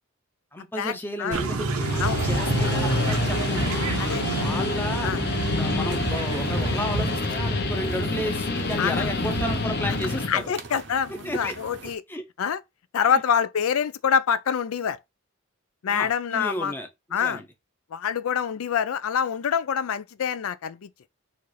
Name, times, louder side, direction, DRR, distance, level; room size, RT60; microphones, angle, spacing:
voice 1, 0.5-3.8 4.4-5.1 5.5-10.5 11.1-11.5 12.1-12.2 13.0-13.1 15.9-17.4, equal, 10° left, 0.6 m, -33 dB
sound 1, 1.3-7.2, right 3 dB, 90° right, 0.8 m, -28 dB
Guitar, 1.6-10.3, left 3 dB, 50° left, 0.7 m, -28 dB
sound 2, 5.9-12.0, right 3 dB, 55° right, 0.7 m, -37 dB
voice 2, 8.8-9.1 9.9-10.0 10.3-12.0 12.4-12.6 12.9-15.0 15.8-16.7 17.1-17.4 17.9-20.9, left 7 dB, 80° left, 0.4 m, -26 dB
4.2 x 2.5 x 4.7 m
head